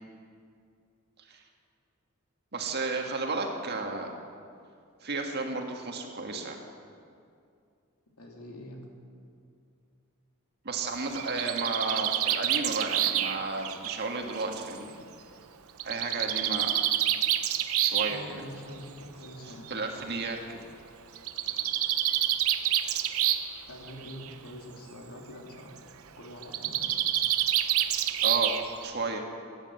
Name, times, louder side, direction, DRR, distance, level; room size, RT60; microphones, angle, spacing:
voice 1, 2.5-4.1 5.0-6.6 10.6-15.0 15.8-16.8 17.8-18.4 19.7-20.6 28.2-28.5 28.8-29.2, right 3 dB, 50° right, 2 dB, 1.8 m, -33 dB
voice 2, 8.2-8.8 18.1-19.7 23.7-25.8 26.2-27.0, equal, 90° left, 0 dB, 2.8 m, -44 dB
Bird, 10.9-14.7 15.8-18.2 19.2-19.3 19.7-19.8 20.0-20.1 21.2-23.6 23.9-24.3 26.4-28.9, right 11 dB, 70° right, 0.8 m, -28 dB
16.0 x 10.5 x 7.8 m, 2.4 s
head